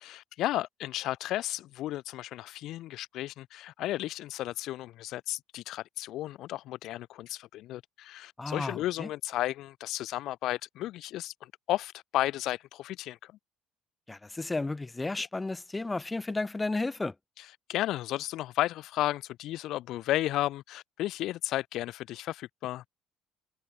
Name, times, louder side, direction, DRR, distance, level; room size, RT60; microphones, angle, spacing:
voice 1, 0.0-13.3 15.2-15.3 17.4-22.9, left 15 dB, 65° left, 5.1 m, -33 dB
voice 2, 8.4-9.1 14.1-17.1, left 2 dB, 15° left, 3.7 m, -33 dB
cardioid pair, 105°, 0 cm